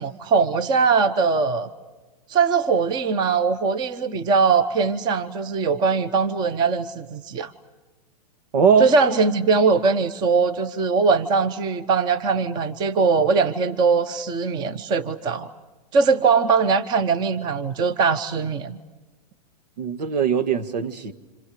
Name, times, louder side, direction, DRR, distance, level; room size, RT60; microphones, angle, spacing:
voice 1, 0.0-1.7 2.3-7.5 8.8-15.5 15.9-18.8, right 5 dB, 20° right, 0.9 m, -21 dB
voice 2, 8.5-8.9 19.8-21.1, right 6 dB, 80° right, 2.1 m, -20 dB
28.5 x 27.0 x 6.6 m
supercardioid pair, 160°, 21 cm